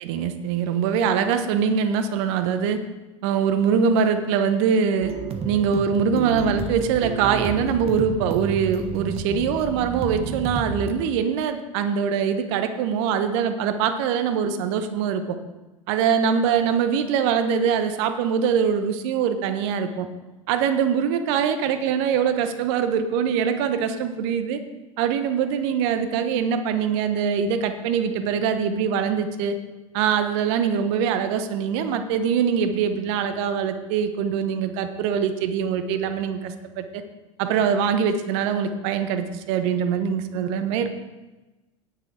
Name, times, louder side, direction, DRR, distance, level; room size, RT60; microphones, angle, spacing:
voice 1, 0.0-2.8 3.2-5.1 5.4-15.4 15.9-20.1 20.5-24.6 25.0-29.5 29.9-37.0 37.4-40.9, right 7 dB, 55° right, 9 dB, 1.1 m, -23 dB
sound 1, 5.0-10.9, right 6 dB, 35° right, 1.2 m, -31 dB
18.0 x 6.8 x 3.7 m, 1.1 s
figure-of-eight pair, 80°, 17 cm